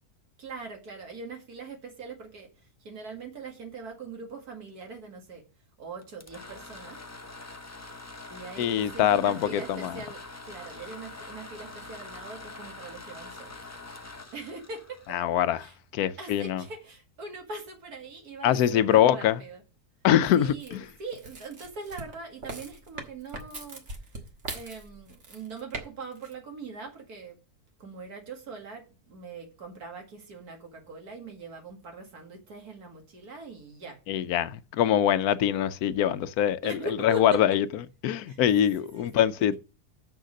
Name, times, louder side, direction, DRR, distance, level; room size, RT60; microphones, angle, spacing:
voice 1, 0.4-2.5 2.8-5.4 5.8-7.0 8.3-13.7 14.3-15.2 15.6-15.8 16.2-19.6 20.4-24.1 24.5-27.4 27.8-34.0 36.6-37.6 38.3-39.6, right 3 dB, 75° right, 2.5 m, -41 dB
sound 1, 6.0-15.8, left 3 dB, 20° left, 0.5 m, -44 dB
voice 2, 8.6-10.0 15.1-15.6 15.9-16.6 18.4-19.4 20.0-20.8 34.1-36.8 37.0-37.6 38.0-39.6, left 10 dB, 75° left, 1.1 m, -23 dB
sound 2, 20.6-25.8 26.1-26.3, right 2 dB, 50° right, 1.8 m, -40 dB
6.7 x 6.4 x 6.4 m
omnidirectional pair, 1.6 m